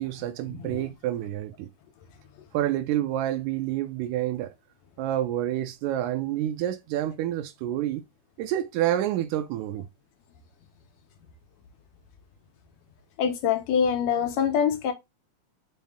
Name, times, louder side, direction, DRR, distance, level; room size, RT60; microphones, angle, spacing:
voice 1, 0.0-1.7 2.5-4.5 5.0-8.0 8.4-9.9, right 12 dB, 80° right, 1.9 m, -28 dB
voice 2, 13.2-14.9, left 7 dB, 75° left, 1.9 m, -24 dB
5.5 x 2.1 x 3.5 m
omnidirectional pair, 3.4 m